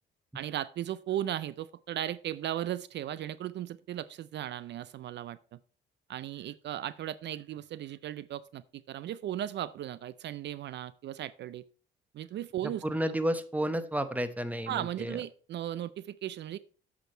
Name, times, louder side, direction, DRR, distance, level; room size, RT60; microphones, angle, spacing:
voice 1, 0.3-5.6 6.1-11.6 12.1-12.8 14.7-16.6, right 12 dB, 60° right, 17 dB, 0.4 m, -36 dB
voice 2, 12.6-15.2, right 1 dB, 5° right, 11 dB, 0.9 m, -32 dB
8.1 x 6.2 x 4.3 m, 0.41 s
cardioid pair, 90°, 20 cm